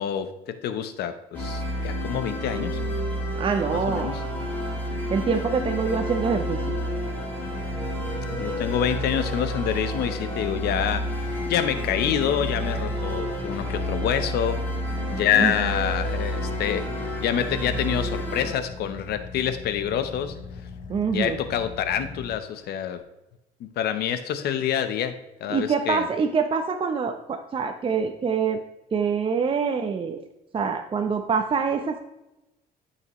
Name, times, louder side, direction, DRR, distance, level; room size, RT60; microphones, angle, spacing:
voice 1, 0.0-2.8 3.7-4.1 8.3-11.1 11.5-14.6 15.1-20.3 21.0-23.0 23.6-26.0, left 9 dB, 70° left, 10 dB, 0.8 m, -27 dB
sound 1, 1.3-18.5, equal, 10° left, 2.7 m, -30 dB
voice 2, 3.4-4.1 5.1-6.8 15.4-15.5 20.9-21.4 25.5-28.6 28.9-30.2 30.5-32.0, right 5 dB, 30° right, 6 dB, 0.7 m, -25 dB
Car / Idling, 10.6-23.0, left 5 dB, 55° left, 1.1 m, -42 dB
12.5 x 5.8 x 3.0 m, 0.96 s
cardioid pair, 110°, 17 cm